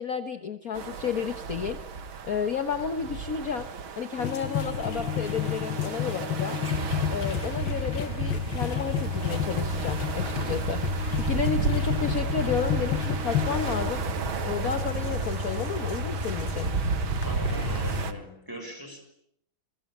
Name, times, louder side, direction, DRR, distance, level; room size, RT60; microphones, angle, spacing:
voice 1, 0.0-1.8 2.2-3.7 4.0-6.6 7.1-10.9 11.2-14.1 14.4-16.7, left 7 dB, 50° left, 9 dB, 1.6 m, -31 dB
sound 1, 0.7-18.1, right 5 dB, 85° right, 2.5 m, -34 dB
sound 2, 4.2-14.0 14.7-16.6 17.2-17.3 17.5-17.9, left 9 dB, 70° left, 2.0 m, -32 dB
Motorcycle / Engine starting / Idling, 6.6-18.1, left 1 dB, 25° right, 4.1 m, -32 dB
voice 2, 17.2-19.1, equal, 10° right, 6 dB, 6.3 m, -40 dB
27.5 x 23.0 x 8.9 m, 0.70 s
omnidirectional pair, 2.2 m